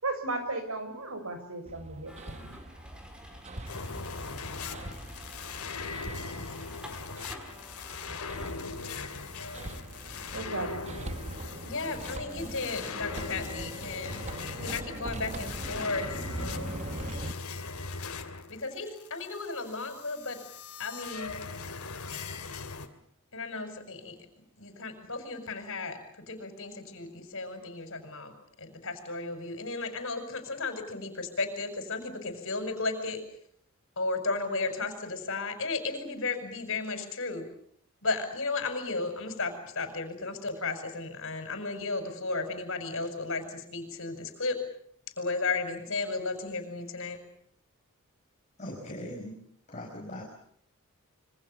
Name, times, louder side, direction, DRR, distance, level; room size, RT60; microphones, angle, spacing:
voice 1, 0.0-2.5 10.3-10.9, right 2 dB, 70° right, 8 dB, 6.3 m, -35 dB
Hammer, 1.7-17.3, right 1 dB, 30° right, 1.2 m, -42 dB
sound 1, 2.1-11.9, equal, 5° right, 4.4 m, -51 dB
sound 2, 3.7-22.9, left 4 dB, 85° left, 2.7 m, -40 dB
voice 2, 11.6-14.2 14.6-16.9 18.5-20.4 20.8-21.4 23.3-24.3 24.6-33.2 34.0-37.5 38.0-44.6 45.2-47.2, left 3 dB, 65° left, 8 dB, 5.9 m, -34 dB
voice 3, 48.6-49.4 49.7-50.2, left 1 dB, 35° left, -2 dB, 5.6 m, -40 dB
27.0 x 24.5 x 7.0 m, 0.68 s
head